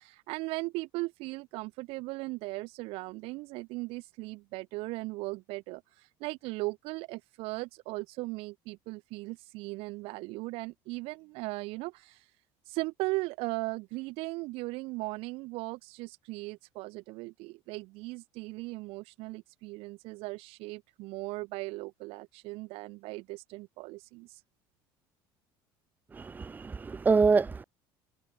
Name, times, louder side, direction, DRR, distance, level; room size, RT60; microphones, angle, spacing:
voice 1, 0.0-12.3 12.6-24.4, right 23 dB, 70° right, 6.5 m, -38 dB
voice 2, 26.2-27.6, right 4 dB, 20° right, 1.0 m, -26 dB
cardioid pair, 125°, 10 cm